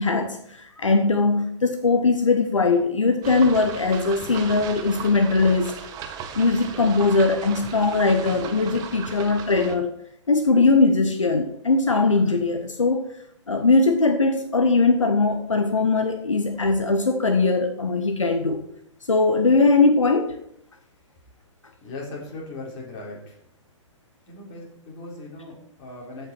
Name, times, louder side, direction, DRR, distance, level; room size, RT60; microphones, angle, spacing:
voice 1, 0.0-5.7 6.3-9.9 10.3-13.0 13.5-18.6 19.1-20.4, left 3 dB, 75° left, 6 dB, 1.0 m, -20 dB
sound 1, 3.2-9.7, right 7 dB, 25° right, 1.0 m, -36 dB
voice 2, 21.8-23.4 24.3-26.3, left 2 dB, 30° left, -2 dB, 3.8 m, -38 dB
14.5 x 5.7 x 4.5 m, 0.73 s
figure-of-eight pair, 120°, 16 cm